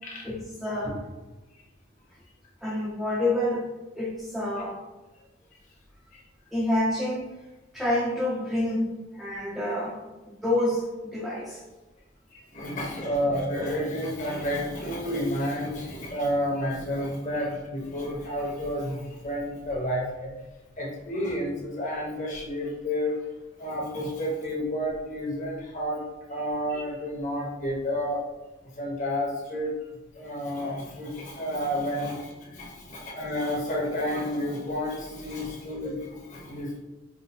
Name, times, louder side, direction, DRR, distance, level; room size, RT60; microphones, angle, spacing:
voice 1, 0.2-0.9 2.6-4.8 6.5-7.3 7.7-10.0 10.3-11.6, left 1 dB, ahead, -5 dB, 0.5 m, -28 dB
voice 2, 12.3-20.3 20.8-23.3 23.6-26.0 26.3-28.2 28.6-29.7 30.1-36.8, equal, 40° left, -3 dB, 1.1 m, -30 dB
4.8 x 2.0 x 4.2 m, 1.1 s
head